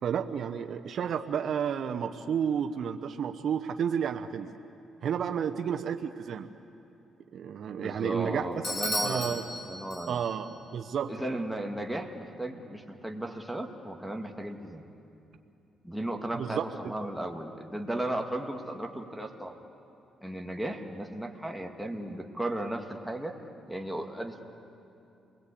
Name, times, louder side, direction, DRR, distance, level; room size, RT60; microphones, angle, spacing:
voice 1, 0.0-4.5 5.0-6.5 7.3-8.5 9.0-9.4 10.1-11.1 16.4-16.6, right 8 dB, 60° right, 6 dB, 1.0 m, -31 dB
voice 2, 7.8-9.4 9.7-10.2 11.1-14.8 15.8-19.6 20.2-23.3 23.7-24.4, right 1 dB, ahead, 2 dB, 2.2 m, -35 dB
Bell / Doorbell, 8.6-10.5, left 1 dB, 40° left, 6.7 m, -34 dB
29.0 x 21.0 x 8.5 m, 2.7 s
cardioid pair, 90°, 0 cm